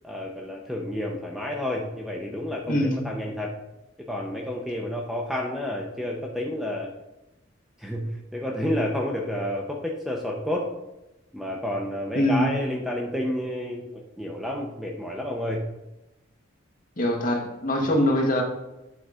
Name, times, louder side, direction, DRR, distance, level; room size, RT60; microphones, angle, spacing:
voice 1, 0.0-3.5 4.1-6.9 7.8-10.7 11.3-13.9 14.2-15.6 17.8-18.0, left 1 dB, ahead, 0 dB, 0.7 m, -30 dB
voice 2, 2.7-3.0 12.1-12.5 17.0-18.4, left 1 dB, 40° left, 2 dB, 1.3 m, -23 dB
8.9 x 3.9 x 4.9 m, 0.96 s
head